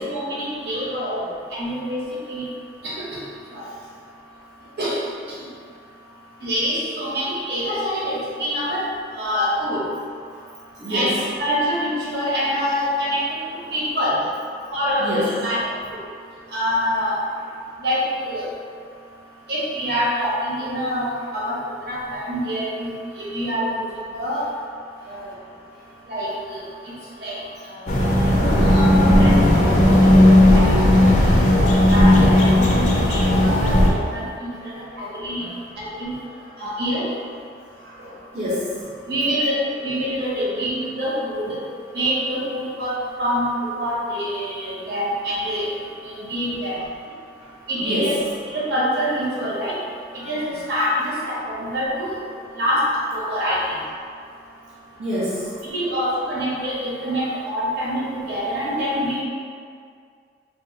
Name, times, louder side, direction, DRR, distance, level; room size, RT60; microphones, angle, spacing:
voice 1, 0.1-1.2 1.6-2.0 2.3-2.5 2.8-3.1 4.8-5.0 6.4-8.8 9.2-9.8 10.9-11.1 11.4-13.2 13.7-14.2 14.7-15.6 16.5-17.1 17.8-18.5 19.5-21.6 21.9-22.9 23.2-23.8 24.1-24.4 25.1-25.2 26.1-26.3 27.2-27.4 28.3-29.4 29.8-31.2 31.9-34.5 35.0-35.4 36.0-36.1 36.6-37.0 39.1-41.6 41.9-42.9 43.2-43.5 43.8-45.7 46.1-46.8 47.7-48.2 48.5-49.7 50.2-52.1 52.6-52.8 53.1-53.6 55.7-59.2, equal, 70° right, -7 dB, 0.8 m, -25 dB
voice 2, 10.8-11.1 15.0-15.3 27.9-28.0 34.6-34.7 35.4-35.6 37.8-38.7 47.8-48.2 50.2-50.3 55.0-55.5, equal, 40° right, -9 dB, 0.5 m, -27 dB
sound 1, 27.9-33.9, left 1 dB, 45° left, 0.4 m, -15 dB
3.2 x 2.0 x 3.0 m, 2.2 s
head